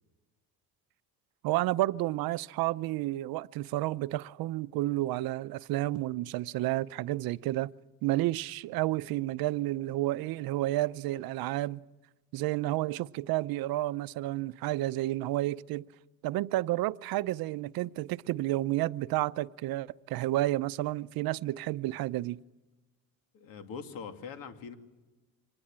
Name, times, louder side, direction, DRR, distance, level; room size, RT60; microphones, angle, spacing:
voice 1, 1.4-7.7 8.0-11.8 12.3-15.8 16.2-22.4, right 16 dB, 80° right, 0.7 m, -31 dB
voice 2, 23.3-24.8, left 6 dB, 80° left, 2.6 m, -42 dB
25.0 x 19.5 x 8.8 m
cardioid pair, 145°, 35 cm